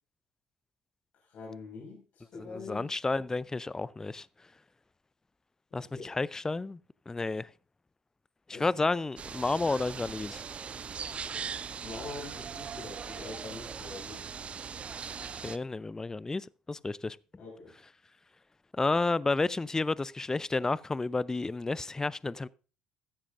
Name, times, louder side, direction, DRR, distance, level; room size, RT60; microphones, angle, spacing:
voice 1, 1.2-2.9 5.8-6.1 8.5-8.7 11.1-14.2 17.4-17.7, left 4 dB, 50° left, 5.2 m, -45 dB
voice 2, 2.4-4.3 5.7-6.8 7.1-7.5 8.5-10.4 15.4-17.2 18.7-22.5, left 3 dB, 15° left, 0.4 m, -31 dB
sound 1, 9.2-15.6, right 6 dB, 35° right, 0.6 m, -40 dB
14.5 x 13.0 x 2.5 m
figure-of-eight pair, 55°, 3 cm